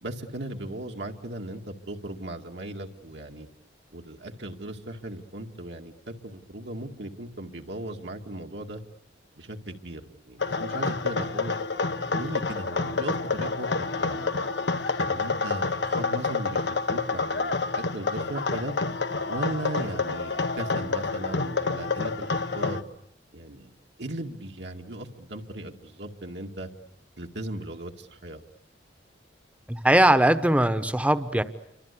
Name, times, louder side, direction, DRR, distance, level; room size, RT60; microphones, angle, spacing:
voice 1, 0.0-3.5 3.9-8.8 9.4-11.5 12.1-14.4 15.0-18.7 19.3-22.8 23.3-23.7 24.0-26.7 27.2-28.4, right 1 dB, 70° right, 2 dB, 2.1 m, -37 dB
sound 1, 10.4-22.8, left 4 dB, 70° left, 1.3 m, -28 dB
voice 2, 29.7-31.4, right 1 dB, 10° right, 11 dB, 1.2 m, -20 dB
28.5 x 25.0 x 8.4 m, 0.78 s
head